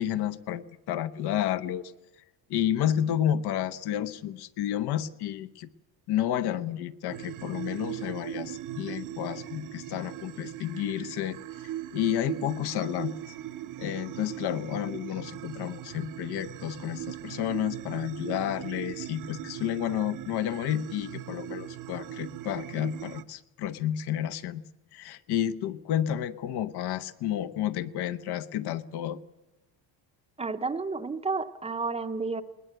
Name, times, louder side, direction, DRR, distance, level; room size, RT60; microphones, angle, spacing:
voice 1, 0.0-1.9 2.5-5.7 6.1-11.4 11.9-13.3 13.8-24.6 24.9-29.2, left 11 dB, 70° left, 13 dB, 1.0 m, -31 dB
sound 1, 7.1-23.2, right 13 dB, 50° right, 0.8 m, -39 dB
voice 2, 30.4-32.4, right 4 dB, 15° right, 10 dB, 0.7 m, -31 dB
21.0 x 19.0 x 7.8 m, 1.1 s
cardioid pair, 160°, 40 cm